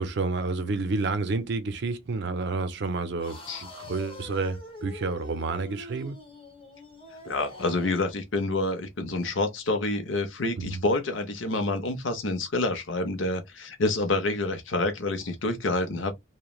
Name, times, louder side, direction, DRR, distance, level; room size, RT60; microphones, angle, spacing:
voice 1, 0.0-6.2 10.6-10.8, right 3 dB, 55° right, 0.5 m, -30 dB
sound 1, 3.2-8.1, left 3 dB, 25° left, 1.0 m, -44 dB
voice 2, 7.2-16.1, left 2 dB, 65° left, 0.7 m, -28 dB
3.0 x 2.1 x 2.3 m
head